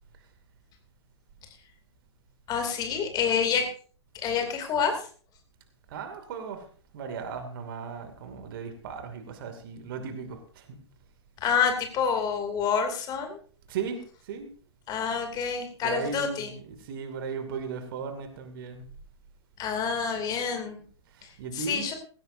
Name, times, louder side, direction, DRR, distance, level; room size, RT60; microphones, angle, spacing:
voice 1, 2.5-3.7 4.1-5.1 11.4-13.4 14.9-16.5 19.6-20.8 21.2-21.9, left 6 dB, 25° left, 5 dB, 2.7 m, -28 dB
voice 2, 5.9-6.7 6.9-10.8 13.7-14.5 15.8-18.9 21.1-21.9, right 6 dB, 50° right, 7 dB, 2.5 m, -36 dB
18.0 x 16.0 x 2.7 m, 0.42 s
figure-of-eight pair, 105°, 15 cm